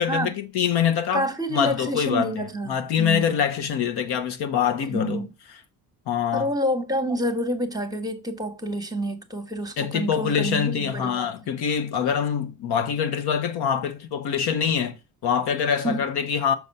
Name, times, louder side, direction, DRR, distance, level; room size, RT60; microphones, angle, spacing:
voice 1, 0.0-2.3 2.7-5.2 6.1-6.5 9.8-15.0 15.2-16.6, left 8 dB, 65° left, 1.1 m, -24 dB
voice 2, 1.1-3.3 4.9-5.3 6.3-11.3 15.8-16.0, equal, 10° right, 1.3 m, -28 dB
6.3 x 4.2 x 5.4 m
supercardioid pair, 80°, 43 cm